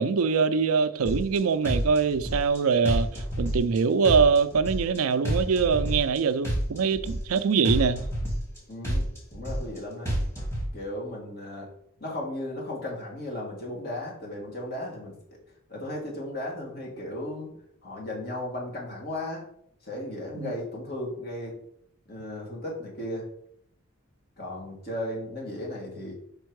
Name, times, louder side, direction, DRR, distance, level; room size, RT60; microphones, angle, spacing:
voice 1, 0.0-8.0 20.3-20.5, right 5 dB, 90° right, 0.4 m, -23 dB
sound 1, 1.1-1.4 1.6-2.6 2.9-3.8 4.0-5.0 5.3-6.2 6.4-7.4 7.7-8.6 8.8-9.8 10.1-10.7, equal, 10° left, 2.0 m, -28 dB
voice 2, 8.7-10.1 10.7-11.7 12.0-15.2 15.7-17.5 17.8-19.4 19.8-21.6 22.1-23.3 24.4-26.1, left 1 dB, 45° left, 2.1 m, -35 dB
5.2 x 4.4 x 4.7 m
head